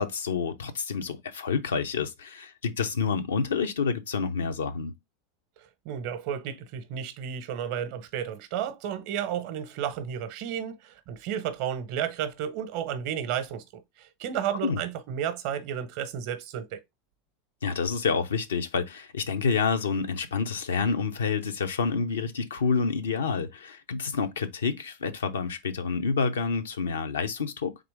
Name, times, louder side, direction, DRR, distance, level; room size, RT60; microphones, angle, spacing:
voice 1, 0.0-4.9 14.6-14.8 17.6-27.7, left 5 dB, 80° left, 0.5 m, -28 dB
voice 2, 5.8-16.8, right 9 dB, 60° right, 0.7 m, -32 dB
3.7 x 3.0 x 3.4 m
hypercardioid pair, 85°, 0 cm